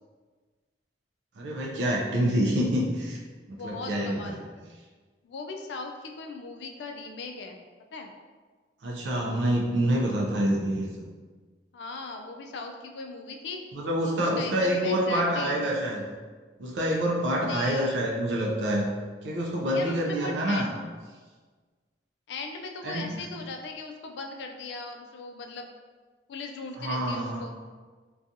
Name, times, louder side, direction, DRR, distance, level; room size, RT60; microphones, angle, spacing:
voice 1, 1.4-3.2 3.6-4.4 8.8-11.1 13.7-16.0 16.6-18.9 19.2-20.7 22.8-23.2 26.8-27.4, equal, 80° right, -2 dB, 0.4 m, -27 dB
voice 2, 3.6-4.4 5.2-7.6 7.9-8.1 11.7-13.6 14.2-15.6 17.5-18.0 19.7-20.8 22.3-25.7 26.3-27.6, left 3 dB, 75° left, 4 dB, 0.3 m, -38 dB
2.5 x 2.3 x 2.6 m, 1.4 s
head